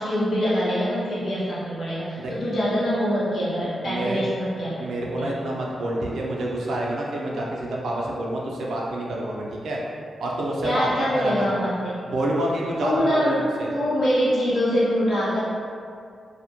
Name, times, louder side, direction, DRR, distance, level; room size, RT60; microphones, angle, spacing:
voice 1, 0.0-5.3 10.6-12.0 12.8-13.4 13.7-15.4, equal, 70° left, -10 dB, 0.9 m, -24 dB
voice 2, 3.8-4.2 4.8-9.8 10.2-10.9 11.1-11.5 12.1-13.7, right 1 dB, 80° right, -3 dB, 0.4 m, -28 dB
2.1 x 2.1 x 2.8 m, 2.3 s
wide cardioid pair, 115°, 0 cm